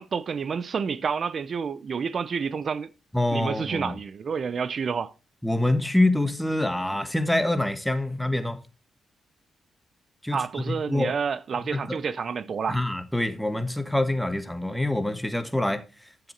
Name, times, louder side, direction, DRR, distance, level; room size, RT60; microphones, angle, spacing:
voice 1, 0.0-2.9 3.3-5.1 10.3-12.8, right 6 dB, 55° right, 0.7 m, -29 dB
voice 2, 3.1-3.9 5.4-8.6 10.2-10.4 10.7-11.1 11.7-12.0 12.7-15.8, left 1 dB, 5° left, 1.4 m, -25 dB
10.5 x 7.2 x 4.4 m
cardioid pair, 80°, 0 cm